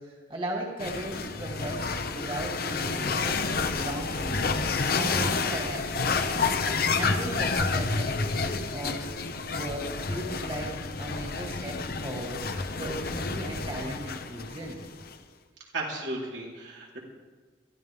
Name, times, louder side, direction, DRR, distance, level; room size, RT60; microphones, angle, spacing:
voice 1, 0.0-4.5 4.9-6.5 6.9-9.0 9.5-14.8, right 1 dB, 30° right, -1 dB, 2.2 m, -37 dB
sound 1, 0.8-15.1, left 4 dB, 55° left, 0.9 m, -29 dB
voice 2, 15.7-17.0, right 2 dB, 85° right, -4 dB, 4.0 m, -34 dB
22.0 x 13.5 x 3.6 m, 1.4 s
head